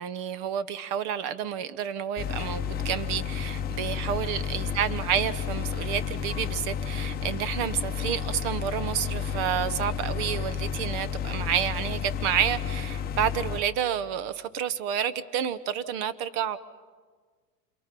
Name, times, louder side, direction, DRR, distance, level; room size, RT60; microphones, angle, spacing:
voice 1, 0.0-16.6, right 9 dB, 40° right, 16 dB, 1.0 m, -30 dB
sound 1, 2.2-13.6, left 7 dB, 20° left, 1.0 m, -31 dB
28.0 x 23.0 x 5.4 m, 1.5 s
hypercardioid pair, 120°, 49 cm